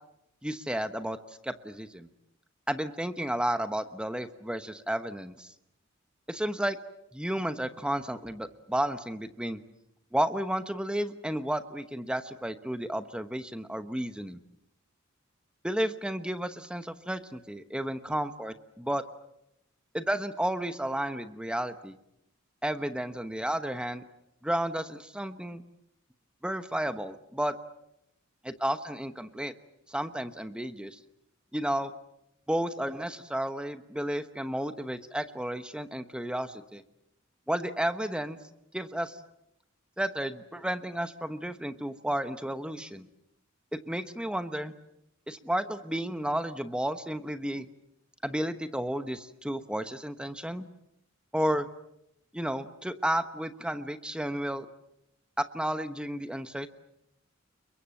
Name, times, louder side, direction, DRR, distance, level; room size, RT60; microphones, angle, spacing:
voice 1, 0.4-1.2 1.4-2.1 2.7-5.5 6.3-6.8 7.1-9.6 10.1-14.4 15.6-19.0 19.9-21.9 22.6-24.0 24.4-25.6 26.4-27.5 28.4-29.5 29.9-31.0 31.5-31.9 32.5-36.8 37.5-38.4 38.7-39.2 40.0-43.0 43.7-44.7 45.3-47.7 48.2-50.7 51.3-51.7 52.3-54.7 55.4-56.7, right 1 dB, 5° right, 10 dB, 1.0 m, -32 dB
29.5 x 23.0 x 7.7 m, 0.81 s
head